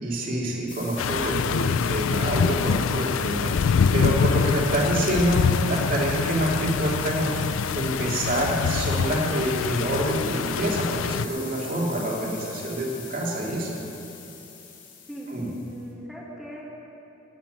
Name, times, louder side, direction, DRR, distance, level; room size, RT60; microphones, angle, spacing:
voice 1, 0.0-7.3 7.7-13.8 15.3-15.5, right 1 dB, 45° right, -3 dB, 2.8 m, -27 dB
sound 1, 0.7-15.8, left 7 dB, 70° left, 3.3 m, -41 dB
sound 2, 1.0-11.3, left 6 dB, 90° left, 0.4 m, -25 dB
voice 2, 15.1-16.6, equal, ahead, -7 dB, 1.9 m, -38 dB
14.5 x 9.3 x 9.4 m, 2.9 s
head